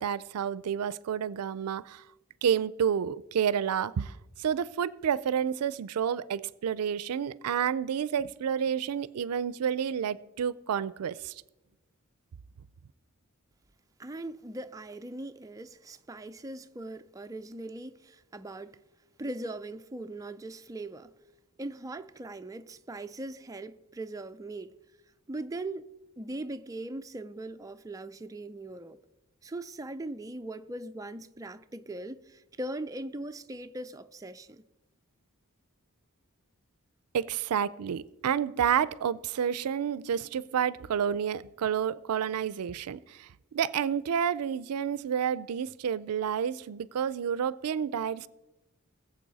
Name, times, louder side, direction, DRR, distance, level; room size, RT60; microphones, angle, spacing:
voice 1, 0.0-2.0 2.4-4.1 4.4-11.3 37.1-48.3, right 8 dB, 90° right, 0.4 m, -30 dB
voice 2, 14.0-18.8 19.2-21.1 21.6-24.7 25.3-25.9 26.2-29.0 29.4-34.6, right 2 dB, 15° right, 0.4 m, -40 dB
20.0 x 7.6 x 4.0 m
head